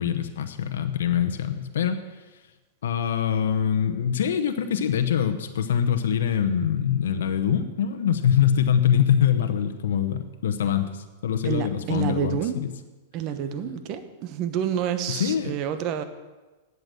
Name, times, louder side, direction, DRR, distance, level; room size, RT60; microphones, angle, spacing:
voice 1, 0.0-2.0 2.8-12.7 13.6-13.8 15.1-15.5, left 9 dB, 85° left, 7 dB, 0.9 m, -24 dB
voice 2, 11.4-12.6 13.1-16.0, right 9 dB, 40° right, 10 dB, 1.0 m, -28 dB
9.2 x 8.1 x 7.6 m, 1.2 s
supercardioid pair, 145°, 0 cm